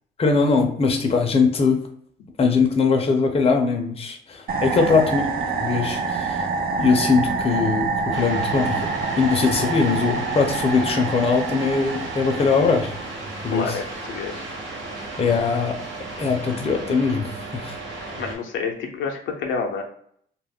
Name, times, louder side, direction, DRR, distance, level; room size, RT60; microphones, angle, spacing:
voice 1, 0.2-1.8 2.4-5.2 5.6-6.4 6.8-8.9 9.2-12.9 13.4-13.7 15.2-15.9 16.2-17.7, left 4 dB, 30° left, 3 dB, 0.5 m, -21 dB
sound 1, 4.5-13.3, right 4 dB, 50° right, 0.5 m, -27 dB
sound 2, 8.1-18.3, right 2 dB, 70° right, 0.9 m, -35 dB
voice 2, 13.5-14.5 18.2-19.8, left 5 dB, 75° left, 2 dB, 0.6 m, -29 dB
2.3 x 2.0 x 3.4 m, 0.64 s
cardioid pair, 90°, 20 cm